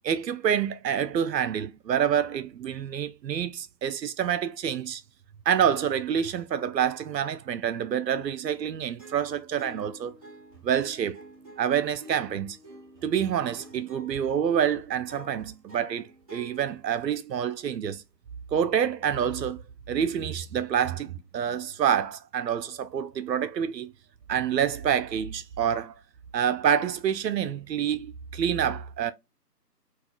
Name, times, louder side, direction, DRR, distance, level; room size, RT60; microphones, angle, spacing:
voice 1, 0.0-5.0 5.5-10.2 10.6-11.2 11.6-12.6 13.0-18.0 18.5-19.6 19.9-23.9 24.3-25.9 26.3-29.1, right 8 dB, 85° right, 0.6 m, -27 dB
sound 1, 9.0-17.1, equal, 20° right, 1.0 m, -48 dB
4.1 x 2.3 x 2.3 m
figure-of-eight pair, 160°, 49 cm